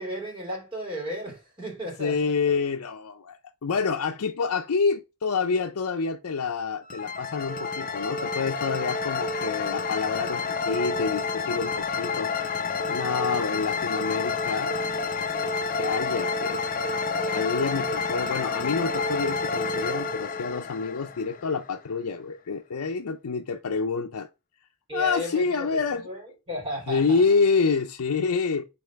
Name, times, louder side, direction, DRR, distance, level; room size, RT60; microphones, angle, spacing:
voice 1, 0.0-2.3 24.9-27.2, equal, 25° right, 2.8 m, -34 dB
voice 2, 2.0-14.8 15.8-16.6 17.3-24.3 24.9-26.1 26.9-28.7, left 5 dB, 80° left, 0.5 m, -27 dB
sound 1, 6.9-21.7, left 4 dB, 40° left, 0.6 m, -29 dB
5.2 x 4.2 x 5.7 m
head